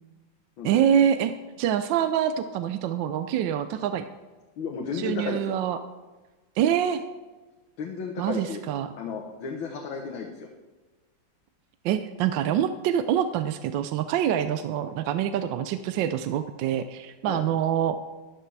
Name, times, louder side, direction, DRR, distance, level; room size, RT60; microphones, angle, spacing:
voice 1, 0.6-1.3 1.6-4.0 4.9-5.8 6.6-7.0 8.2-8.9 11.8-18.0, right 9 dB, 75° right, 10 dB, 1.2 m, -25 dB
voice 2, 4.6-5.6 7.8-8.6 9.0-10.5 17.2-17.4, left 5 dB, 80° left, 1 dB, 1.8 m, -33 dB
13.0 x 11.5 x 3.3 m, 1.3 s
omnidirectional pair, 2.1 m